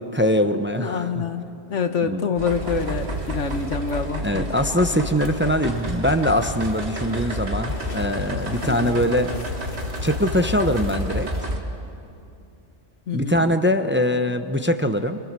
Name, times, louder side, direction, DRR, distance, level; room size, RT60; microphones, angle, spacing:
voice 1, 0.0-1.1 2.1-2.3 4.2-9.3 10.0-11.3 13.1-15.2, equal, 10° right, 8 dB, 0.8 m, -22 dB
voice 2, 0.8-4.5 8.6-9.0 13.1-13.5, left 5 dB, 85° left, 7 dB, 1.6 m, -26 dB
sound 1, 2.4-11.6, equal, 65° right, 2.5 m, -30 dB
sound 2, 2.5-11.6, left 2 dB, 50° left, 1.6 m, -42 dB
26.5 x 24.5 x 7.6 m, 2.6 s
omnidirectional pair, 1.2 m